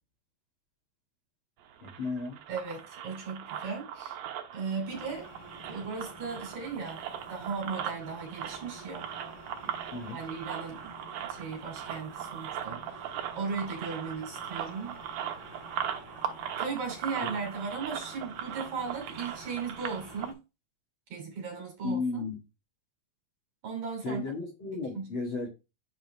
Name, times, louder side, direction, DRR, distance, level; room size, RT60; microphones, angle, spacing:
sound 1, 1.6-20.3, right 9 dB, 90° right, 2.7 m, -39 dB
voice 1, 1.8-2.4 9.9-10.2 21.8-22.4 24.0-25.5, left 3 dB, 45° left, 2.2 m, -34 dB
voice 2, 2.5-4.2 4.5-5.3 5.6-9.1 9.6-9.7 10.1-10.9 11.2-15.0 16.6-20.4 21.1-22.3 23.6-24.2 24.9-25.1, right 5 dB, 55° right, 4.0 m, -37 dB
sound 2, 4.9-20.3, left 1 dB, 65° left, 3.9 m, -51 dB
8.6 x 5.1 x 3.2 m
omnidirectional pair, 4.0 m